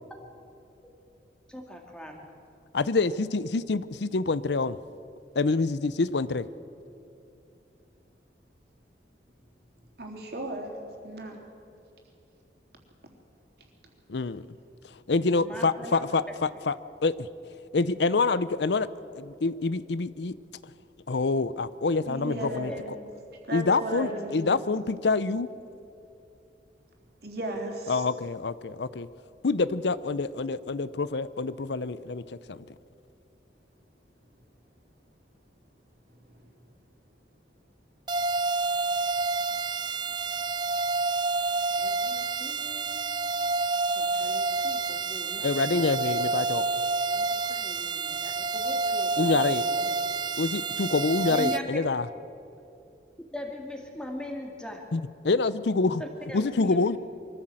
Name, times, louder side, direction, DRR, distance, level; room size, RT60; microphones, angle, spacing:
voice 1, 1.5-2.3 15.3-16.0 22.7-22.8 41.7-43.0 44.0-45.5 47.1-49.9 51.3-51.9 53.3-54.8 56.0-56.9, equal, 5° left, 1 dB, 2.2 m, -40 dB
voice 2, 2.7-4.8 5.4-6.5 14.1-14.4 15.1-16.8 17.0-17.3 17.7-20.4 21.1-22.7 23.5-25.5 27.9-29.1 29.4-32.2 32.5-32.6 45.4-46.7 49.2-49.7 50.4-52.1 54.9-56.0 56.3-57.0, left 3 dB, 75° left, 16 dB, 0.6 m, -26 dB
voice 3, 10.0-10.7 11.0-11.4 22.1-23.1 23.4-24.7 27.2-28.0 36.3-36.5, right 1 dB, 60° right, 1 dB, 3.5 m, -35 dB
sound 1, 38.1-51.6, right 3 dB, 25° right, 0.5 m, -28 dB
23.5 x 14.5 x 7.7 m, 2.7 s
head